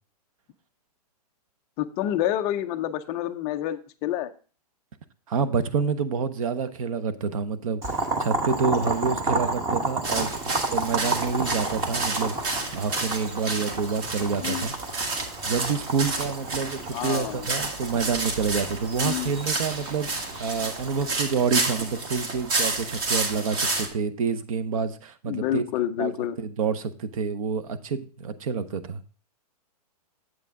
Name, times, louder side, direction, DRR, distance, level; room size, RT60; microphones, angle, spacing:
voice 1, 1.8-4.3 10.1-10.3 14.4-14.7 16.9-17.5 19.0-19.3 25.3-26.4, left 12 dB, 15° left, 8 dB, 0.3 m, -28 dB
voice 2, 5.3-14.7 15.5-25.6 26.0-26.1 26.4-29.0, right 6 dB, 55° right, 14 dB, 0.8 m, -28 dB
Boiling, 7.8-21.1, right 2 dB, 15° right, 0.9 m, -31 dB
sound 1, 10.0-23.9, right 3 dB, 35° right, 1.5 m, -30 dB
8.2 x 7.7 x 3.5 m, 0.38 s
hypercardioid pair, 160°, 21 cm